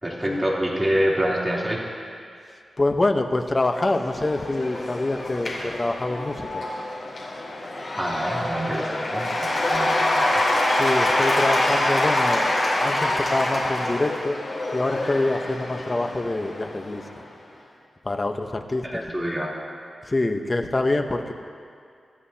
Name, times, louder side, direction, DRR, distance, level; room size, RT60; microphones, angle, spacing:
voice 1, 0.0-1.8 8.0-10.4 18.9-19.5, equal, 10° right, -6 dB, 3.3 m, -26 dB
voice 2, 2.8-6.6 10.8-14.4 14.7-17.0 18.0-19.0 20.1-21.3, left 2 dB, 25° left, 5 dB, 1.0 m, -25 dB
Cheering / Applause / Crowd, 3.7-17.2, left 1 dB, 55° left, 3.9 m, -25 dB
25.5 x 13.5 x 2.9 m, 2.3 s
wide cardioid pair, 120°, 0 cm